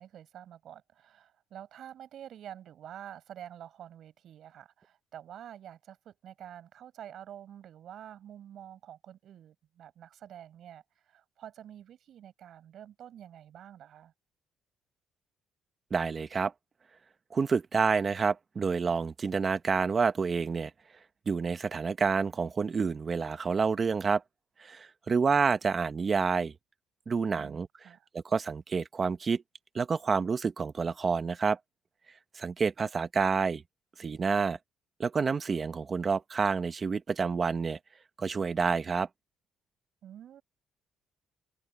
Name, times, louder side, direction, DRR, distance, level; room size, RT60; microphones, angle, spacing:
voice 1, 0.0-14.1 27.3-28.1 40.0-40.4, right 10 dB, 50° right, 7.7 m, -48 dB
voice 2, 15.9-16.5 17.3-20.7 21.3-24.2 24.6-26.5 27.1-27.7 28.1-29.4 29.7-31.6 32.4-33.6 34.0-34.6 35.0-37.8 38.2-39.1, right 5 dB, 25° right, 0.9 m, -28 dB
cardioid pair, 160°, 0 cm